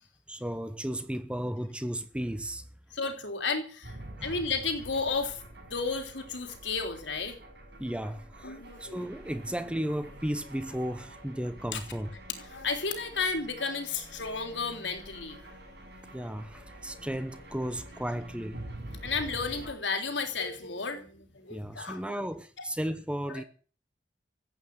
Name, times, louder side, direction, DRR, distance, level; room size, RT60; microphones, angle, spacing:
voice 1, 0.3-2.6 4.2-4.3 7.8-8.5 8.8-12.1 16.1-18.6 21.5-23.4, equal, 5° right, 0.9 m, -34 dB
voice 2, 2.9-7.4 8.4-9.0 11.7-11.8 12.4-15.4 19.0-22.2 22.6-22.7 23.3-23.4, left 4 dB, 90° left, 3.5 m, -33 dB
sound 1, 3.8-19.7, right 1 dB, 65° right, 7.7 m, -47 dB
15.0 x 8.7 x 9.4 m
head